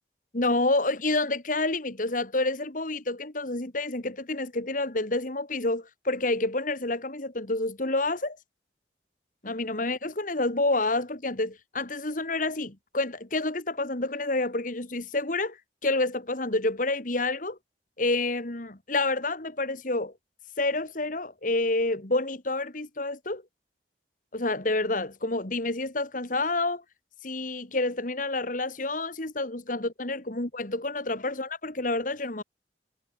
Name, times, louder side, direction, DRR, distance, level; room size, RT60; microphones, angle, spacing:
voice 1, 0.3-8.4 9.4-15.6 15.8-17.6 18.0-20.1 20.6-23.4 24.3-26.8 27.2-32.4, left 2 dB, 45° left, 2.3 m, -28 dB
head